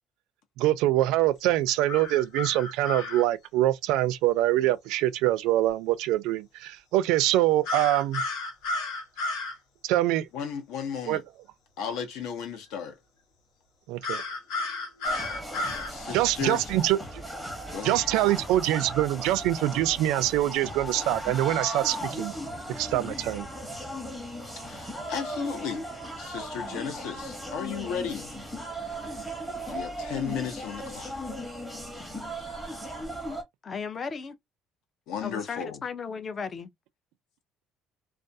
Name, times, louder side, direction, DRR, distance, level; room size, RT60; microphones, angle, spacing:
voice 1, 0.6-8.2 9.8-10.3 11.1-11.2 13.9-14.2 16.1-17.0 17.8-22.3 22.7-23.5, right 14 dB, 80° right, 0.4 m, -24 dB
sound 1, 1.9-3.2 7.6-9.5 14.0-15.9, left 2 dB, 90° left, 1.0 m, -32 dB
voice 2, 10.3-11.2 11.8-13.0 15.9-16.7 17.7-18.0 24.6-25.9 26.2-28.3 29.7-31.1 35.1-35.8, left 7 dB, 70° left, 0.7 m, -34 dB
sound 2, 15.0-33.4, equal, ahead, 0.7 m, -37 dB
voice 3, 33.6-34.3 35.2-36.7, left 5 dB, 25° left, 0.4 m, -35 dB
2.4 x 2.3 x 2.6 m
cardioid pair, 170°, 0 cm